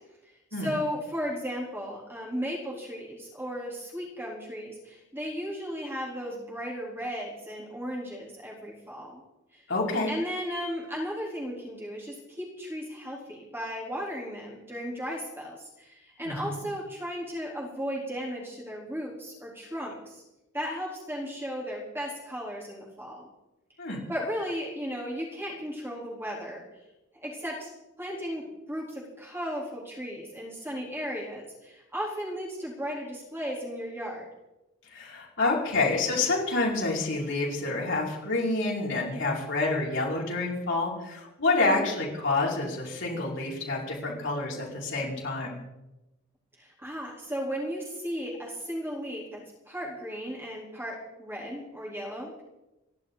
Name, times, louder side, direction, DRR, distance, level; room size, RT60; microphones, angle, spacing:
voice 1, 0.6-9.2 9.5-9.6 10.1-20.2 20.5-23.3 24.1-26.6 27.2-27.7 28.0-34.3 41.6-41.9 46.6-52.4, equal, 10° right, -4 dB, 3.7 m, -35 dB
voice 2, 9.7-10.1 16.3-16.6 23.8-24.0 34.9-45.6, left 3 dB, 60° left, -4 dB, 5.2 m, -28 dB
28.0 x 11.5 x 4.1 m, 0.99 s
head